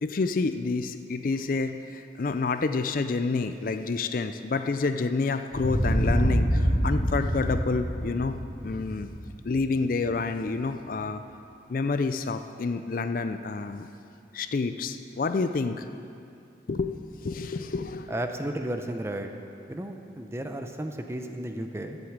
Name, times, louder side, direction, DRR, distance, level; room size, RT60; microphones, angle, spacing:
voice 1, 0.0-9.1 9.4-11.2 11.7-13.9 14.3-15.9 16.7-18.2, left 4 dB, 50° left, 9 dB, 0.4 m, -29 dB
sound 1, 5.5-10.1, equal, 75° left, 2.6 m, -26 dB
voice 2, 18.1-19.3 19.7-22.0, right 1 dB, 15° right, 5 dB, 0.6 m, -33 dB
12.5 x 8.0 x 7.2 m, 2.6 s
head